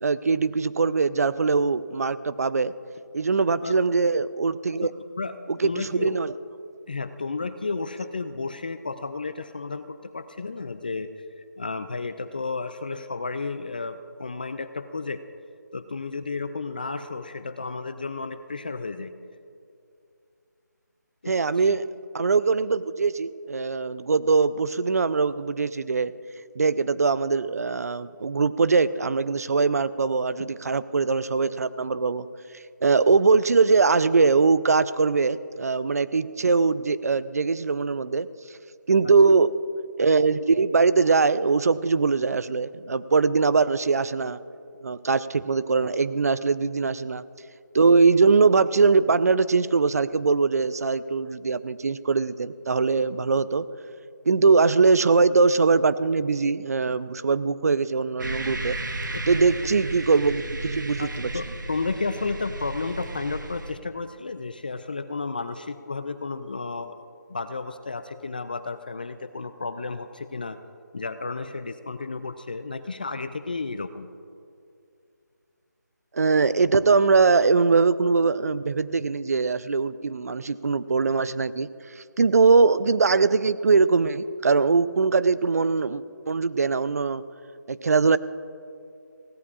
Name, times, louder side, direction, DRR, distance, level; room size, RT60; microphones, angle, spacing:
voice 1, 0.0-2.7 3.1-4.9 5.6-6.3 21.3-21.8 22.1-26.1 26.6-32.3 32.8-38.3 38.9-39.5 40.0-44.4 44.8-47.2 47.7-53.6 54.3-58.8 59.3-61.3 76.1-81.7 82.2-87.2 87.7-88.2, right 4 dB, 55° right, 15 dB, 0.5 m, -21 dB
voice 2, 4.8-5.3 5.6-6.2 6.9-11.1 11.4-15.2 15.7-19.1 21.2-21.3 21.7-21.8 30.4-30.5 61.0-67.0 67.3-70.6 70.9-74.1, left 4 dB, 30° left, 10 dB, 0.3 m, -32 dB
sound 1, 58.2-63.7, right 2 dB, 90° right, 1.2 m, -34 dB
23.0 x 16.5 x 2.4 m, 2.5 s
figure-of-eight pair, 170°, 10 cm